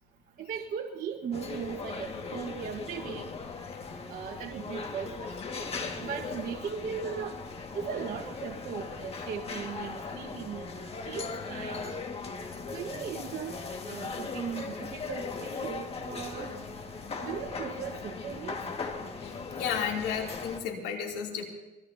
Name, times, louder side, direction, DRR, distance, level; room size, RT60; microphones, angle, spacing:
voice 1, 0.4-3.3 4.1-5.3 6.0-7.3 7.7-10.7 11.0-11.9 12.7-13.6 13.9-16.5 17.2-18.6, right 7 dB, 60° right, 1 dB, 1.5 m, -38 dB
sound 1, 1.3-20.6, left 4 dB, 35° left, 2.0 m, -38 dB
voice 2, 19.2-21.5, left 7 dB, 90° left, 0 dB, 3.1 m, -33 dB
24.5 x 20.0 x 2.9 m, 1.1 s
cardioid pair, 110°, 17 cm